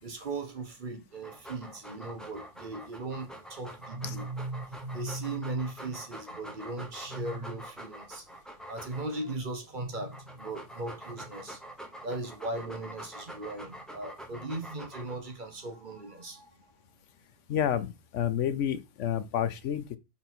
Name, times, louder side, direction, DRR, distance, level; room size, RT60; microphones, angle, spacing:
voice 1, 0.0-8.3 8.7-11.6 12.0-16.7, right 2 dB, 45° right, 1.2 m, -38 dB
Dog, 1.1-9.3 9.9-15.3, right 1 dB, ahead, 1.0 m, -46 dB
voice 2, 17.5-20.0, left 9 dB, 85° left, 1.1 m, -30 dB
5.8 x 3.9 x 4.5 m
omnidirectional pair, 1.2 m